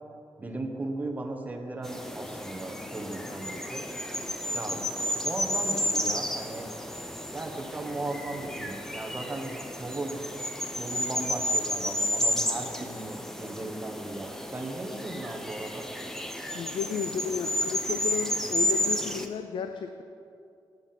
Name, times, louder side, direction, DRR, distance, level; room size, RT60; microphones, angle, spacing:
voice 1, 0.4-3.8 4.5-4.8 5.2-6.7 7.3-10.2 10.7-15.8, right 2 dB, 20° right, 2 dB, 1.0 m, -36 dB
sound 1, 1.8-19.3, left 1 dB, 5° left, 0.6 m, -32 dB
voice 2, 16.5-20.0, left 6 dB, 75° left, 7 dB, 0.4 m, -33 dB
9.2 x 7.1 x 5.8 m, 2.5 s
wide cardioid pair, 130°, 9 cm